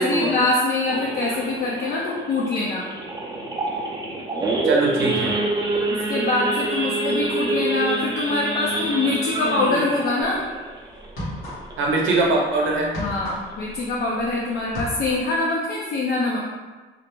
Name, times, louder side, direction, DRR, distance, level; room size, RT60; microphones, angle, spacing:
voice 1, 0.0-2.9 6.1-10.4 13.0-16.4, left 2 dB, 55° left, -4 dB, 0.5 m, -24 dB
Idling / Accelerating revving vroom / Sawing, 0.9-12.0 12.4-12.6 12.8-12.9 13.4-13.7 14.1-14.2 14.4-14.8, right 2 dB, 20° right, 0.5 m, -27 dB
voice 2, 4.6-5.3 11.8-12.9, right 2 dB, 75° right, -1 dB, 0.6 m, -21 dB
sound 1, 10.2-10.4 11.0-11.9 12.2-14.3 14.6-15.4, equal, 85° left, 1.1 m, -33 dB
2.5 x 2.0 x 3.0 m, 1.3 s
cardioid pair, 90°, 20 cm